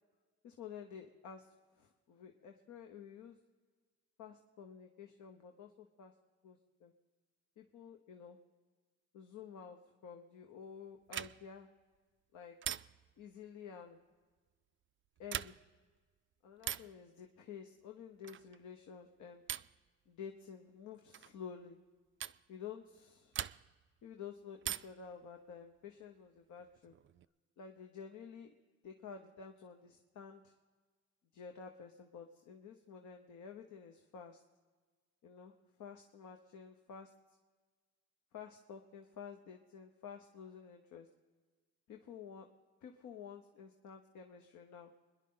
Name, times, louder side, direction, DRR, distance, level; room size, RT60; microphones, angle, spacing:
voice 1, 0.4-3.4 4.2-6.1 6.4-6.9 7.6-8.4 9.1-11.7 12.3-12.8 13.2-14.0 15.2-15.6 16.4-19.4 20.1-21.8 22.5-23.4 24.0-26.9 27.6-28.5 28.8-30.5 31.3-34.4 35.2-35.5 35.8-37.1 38.3-41.1 41.9-42.5 42.8-44.9, left 7 dB, 75° left, 4 dB, 1.1 m, -51 dB
sound 1, 11.1-11.6 12.6-13.2 15.2-15.8 16.6-17.0 18.2-18.6 19.5-19.8 21.1-21.4 22.2-22.4 23.3-23.9 24.6-25.1 26.6-27.2, right 11 dB, 45° right, 0.4 m, -42 dB
25.5 x 10.5 x 3.8 m, 1.5 s
cardioid pair, 90°, 30 cm